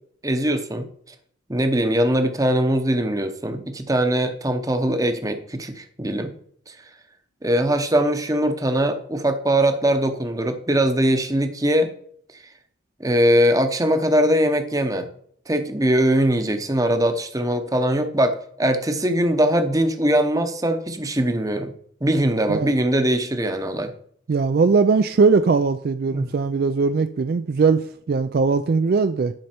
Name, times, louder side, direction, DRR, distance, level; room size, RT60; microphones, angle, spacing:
voice 1, 0.2-0.9 1.5-6.3 6.7-6.8 7.4-11.9 13.0-15.1 15.5-21.7 22.0-23.9 26.1-26.3, right 1 dB, 15° right, 7 dB, 0.8 m, -21 dB
voice 2, 24.3-29.3, right 4 dB, 50° right, 10 dB, 0.3 m, -20 dB
10.5 x 5.4 x 4.4 m, 0.62 s
head